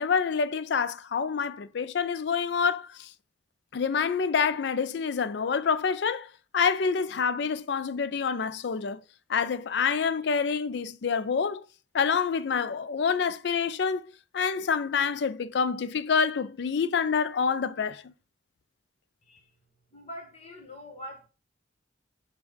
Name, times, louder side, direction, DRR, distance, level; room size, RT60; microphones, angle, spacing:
voice 1, 0.0-3.1 3.7-9.0 9.3-11.6 11.9-14.0 14.3-18.1, left 6 dB, 60° left, 0.4 m, -27 dB
voice 2, 19.9-21.3, equal, 35° left, 1.1 m, -43 dB
6.2 x 2.3 x 3.4 m
head